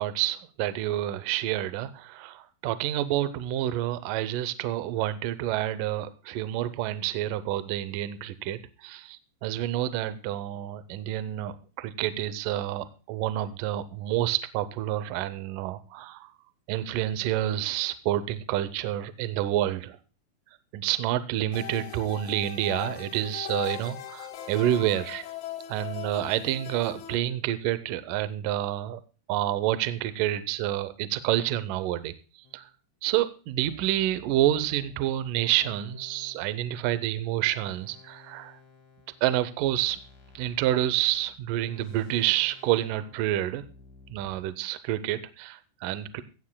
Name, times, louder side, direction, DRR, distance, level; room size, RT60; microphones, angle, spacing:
voice 1, 0.0-16.3 16.7-20.0 20.7-25.2 25.7-29.0 29.3-32.1 32.5-32.7 33.0-38.6 39.2-40.0 40.4-43.6 44.1-46.2, right 13 dB, 80° right, 13 dB, 1.9 m, -28 dB
sound 1, 21.5-27.2, left 11 dB, 85° left, 1.6 m, -39 dB
sound 2, 32.4-32.8 33.6-37.0 37.6-44.4, left 4 dB, 50° left, 3.0 m, -54 dB
16.0 x 15.0 x 2.2 m, 0.36 s
omnidirectional pair, 4.8 m